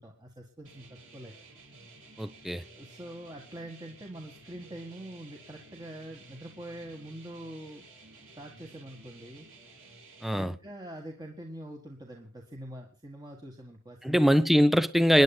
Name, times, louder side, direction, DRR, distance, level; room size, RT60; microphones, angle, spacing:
voice 1, 0.0-1.3 2.7-7.8 8.4-9.5 10.3-14.2, right 1 dB, 20° right, 1.7 m, -44 dB
sound 1, 0.6-10.4, right 3 dB, 65° right, 7.7 m, -53 dB
voice 2, 2.2-2.6 10.2-10.6 14.0-15.2, equal, ahead, 0.5 m, -22 dB
28.5 x 10.5 x 2.3 m
head